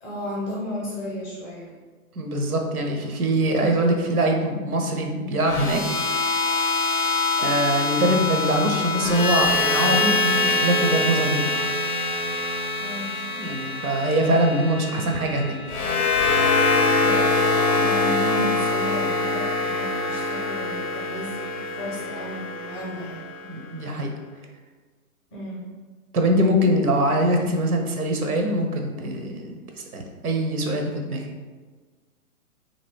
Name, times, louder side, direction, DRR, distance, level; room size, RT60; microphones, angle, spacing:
voice 1, 0.0-1.7 12.8-13.1 16.9-23.3 25.3-25.6, equal, 10° left, -6 dB, 0.6 m, -34 dB
voice 2, 2.2-5.8 7.4-11.5 13.4-15.6 23.4-24.1 26.1-29.6 29.9-31.2, right 1 dB, 85° right, 3 dB, 0.6 m, -23 dB
sound 1, 5.5-23.6, left 3 dB, 80° left, 0.6 m, -24 dB
2.6 x 2.5 x 3.2 m, 1.4 s
figure-of-eight pair, 125°, 43 cm